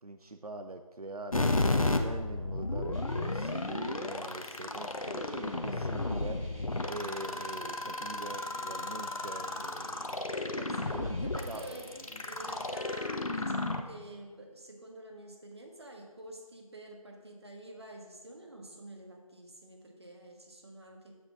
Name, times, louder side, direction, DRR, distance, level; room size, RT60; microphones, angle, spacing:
voice 1, 0.0-11.2 11.5-11.8, right 2 dB, 85° right, 6 dB, 0.6 m, -44 dB
sound 1, 1.3-13.8, left 2 dB, 70° left, 0.9 m, -33 dB
sound 2, 2.9-12.7, right 1 dB, 70° right, 2.5 m, -52 dB
voice 2, 10.6-21.1, right 1 dB, 45° right, 2 dB, 1.5 m, -48 dB
9.2 x 8.0 x 3.6 m, 1.4 s
figure-of-eight pair, 170°, 19 cm